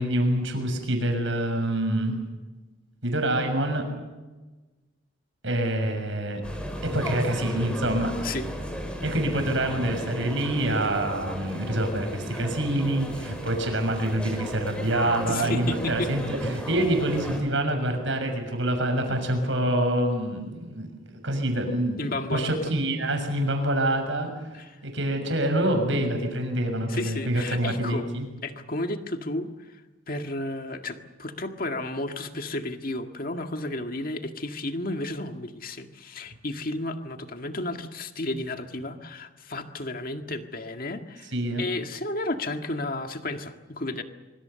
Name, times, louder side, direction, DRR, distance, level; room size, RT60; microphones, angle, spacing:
voice 1, 0.0-2.2 3.0-3.8 5.4-6.4 6.8-8.1 9.0-24.3 24.8-28.3 41.3-41.7, right 1 dB, 65° right, 5 dB, 6.4 m, -26 dB
sound 1, 6.4-17.4, equal, 5° left, 4.8 m, -34 dB
voice 2, 8.2-8.5 15.3-16.1 22.0-22.6 24.5-24.8 26.9-28.1 28.4-29.8 30.1-44.0, left 2 dB, 45° left, 6 dB, 1.9 m, -32 dB
25.0 x 25.0 x 7.0 m, 1.2 s
head